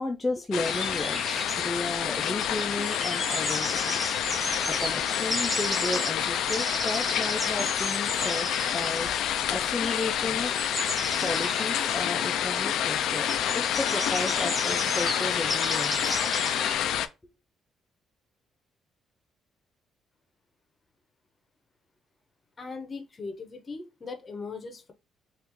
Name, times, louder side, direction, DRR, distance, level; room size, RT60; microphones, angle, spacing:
voice 1, 0.0-4.0 4.7-10.6 11.2-16.2, left 2 dB, 15° left, 0.4 m, -34 dB
sound 1, 0.5-17.1, left 10 dB, 80° left, 0.3 m, -28 dB
sound 2, 0.6-16.8, left 1 dB, ahead, 1.1 m, -34 dB
voice 2, 22.6-24.9, left 4 dB, 35° left, 0.8 m, -39 dB
3.5 x 2.4 x 3.0 m
cardioid pair, 115°, 0 cm